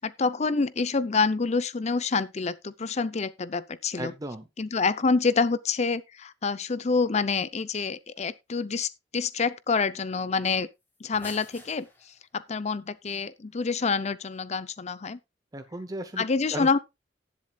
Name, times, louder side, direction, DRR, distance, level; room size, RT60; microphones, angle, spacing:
voice 1, 0.0-4.1 4.6-10.7 11.0-11.9 12.3-15.2 16.2-16.8, left 4 dB, 35° left, 0.5 m, -27 dB
voice 2, 4.0-4.5 15.5-16.8, right 1 dB, 20° right, 0.8 m, -36 dB
sound 1, 10.8-12.3, left 1 dB, 10° left, 3.5 m, -47 dB
18.0 x 7.5 x 2.3 m
head